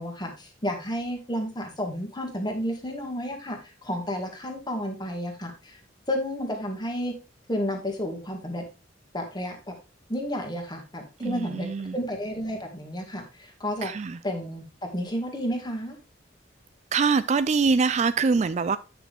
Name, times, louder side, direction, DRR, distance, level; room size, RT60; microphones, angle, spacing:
voice 1, 0.0-5.8 6.1-7.1 7.5-8.6 9.1-9.7 10.1-11.7 11.9-13.9 14.2-14.6 14.9-16.0, equal, 20° left, 1.8 m, -31 dB
voice 2, 11.2-12.0 13.8-14.2 16.9-18.8, right 4 dB, 35° right, 0.3 m, -24 dB
9.5 x 6.0 x 3.4 m
head